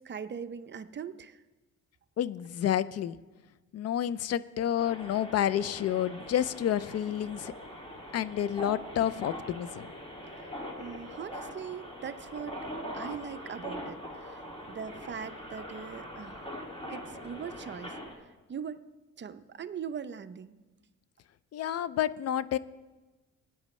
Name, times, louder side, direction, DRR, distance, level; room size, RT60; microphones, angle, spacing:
voice 1, 0.0-1.4 10.3-12.6 12.9-16.5 16.9-18.8 19.2-20.6, right 7 dB, 40° right, 11 dB, 0.6 m, -41 dB
voice 2, 2.2-3.2 3.7-7.5 8.1-9.9 21.5-22.6, left 10 dB, 55° left, 17 dB, 0.5 m, -29 dB
sound 1, 4.8-18.2, equal, 20° left, 2.4 m, -42 dB
17.5 x 9.3 x 3.2 m, 1.2 s
cardioid pair, 90°, 30 cm